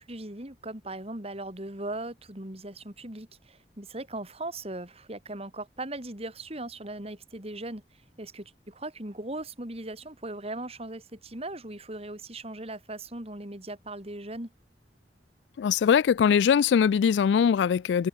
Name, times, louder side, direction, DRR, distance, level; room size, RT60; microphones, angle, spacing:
voice 1, 0.1-7.8 8.2-14.5, right 2 dB, 35° right, 3.9 m, -38 dB
voice 2, 15.6-18.1, left 7 dB, 80° left, 0.3 m, -21 dB
head